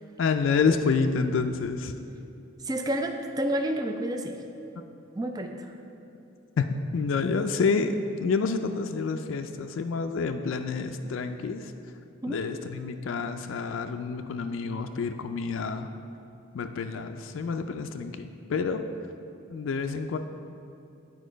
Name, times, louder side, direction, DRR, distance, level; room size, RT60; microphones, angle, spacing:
voice 1, 0.2-1.9 6.6-6.7 6.9-11.7 12.3-15.9 16.5-18.8 19.5-20.2, left 5 dB, 65° left, 6 dB, 0.3 m, -28 dB
voice 2, 2.6-4.3 5.2-5.7 12.2-12.4, right 1 dB, 20° right, 4 dB, 0.4 m, -29 dB
8.5 x 4.5 x 5.1 m, 2.8 s
head